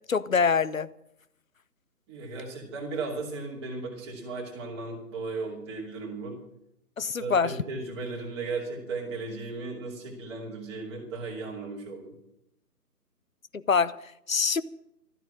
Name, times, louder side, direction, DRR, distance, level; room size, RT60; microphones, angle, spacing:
voice 1, 0.1-0.9 7.0-7.6 13.5-14.6, left 5 dB, 55° left, 0.8 m, -25 dB
voice 2, 2.1-6.4 7.2-12.1, right 3 dB, 15° right, 2.6 m, -36 dB
13.0 x 12.5 x 6.5 m
figure-of-eight pair, 150°, 48 cm